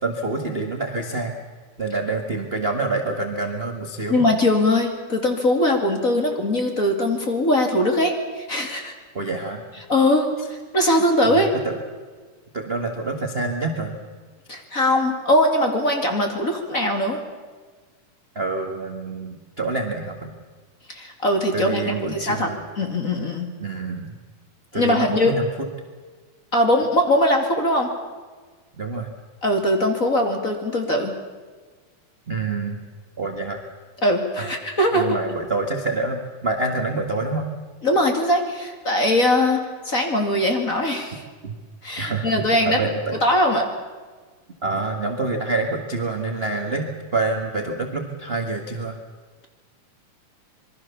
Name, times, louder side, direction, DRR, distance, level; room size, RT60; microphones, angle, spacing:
voice 1, 0.0-1.4 1.8-4.2 9.1-9.6 11.3-11.8 12.5-13.9 18.3-20.3 21.5-22.6 23.6-24.1 24.7-25.5 28.7-29.1 32.3-32.8 33.2-33.6 34.4-34.5 34.9-37.5 41.4-41.5 42.0-42.3 42.7-43.2 44.6-49.0, right 3 dB, 25° right, 3 dB, 1.3 m, -27 dB
voice 2, 4.1-8.9 9.9-11.5 14.5-17.2 20.9-22.5 22.8-23.5 24.7-25.4 26.5-27.9 29.4-31.1 34.0-35.1 37.8-41.2 41.8-42.9 43.2-43.7, left 1 dB, 25° left, 4 dB, 2.5 m, -21 dB
26.5 x 22.5 x 7.1 m, 1.4 s
omnidirectional pair, 3.7 m